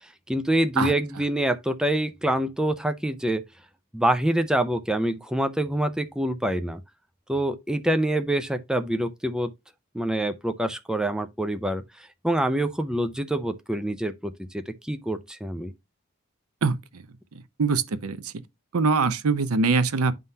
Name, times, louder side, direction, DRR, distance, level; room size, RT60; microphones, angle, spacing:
voice 1, 0.3-3.4 3.9-6.8 7.3-9.5 9.9-15.7, right 1 dB, 5° right, 0.4 m, -26 dB
voice 2, 16.6-17.0 17.6-18.3 18.7-20.1, right 4 dB, 90° right, 0.6 m, -23 dB
10.5 x 3.7 x 2.7 m
head